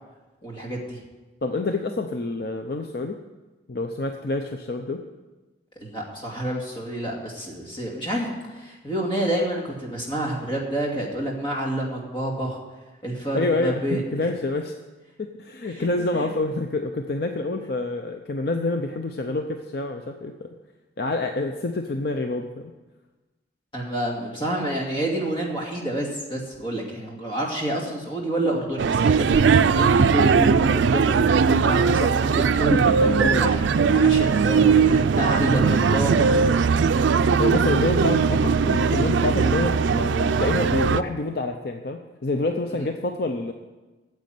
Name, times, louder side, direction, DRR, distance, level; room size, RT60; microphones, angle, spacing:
voice 1, 0.4-1.0 5.8-12.6 13.0-14.0 15.6-15.9 16.2-16.3 23.7-36.4 42.7-42.9, right 1 dB, 25° left, -2 dB, 2.5 m, -28 dB
voice 2, 1.4-3.2 3.7-5.0 13.3-14.7 15.2-20.5 21.0-22.7 32.7-33.4 33.7-33.9 34.3-34.5 37.2-43.5, left 2 dB, 55° left, 5 dB, 0.6 m, -27 dB
sound 1, 28.8-41.0, right 5 dB, 80° right, 0.4 m, -19 dB
9.4 x 7.7 x 9.2 m, 1.2 s
head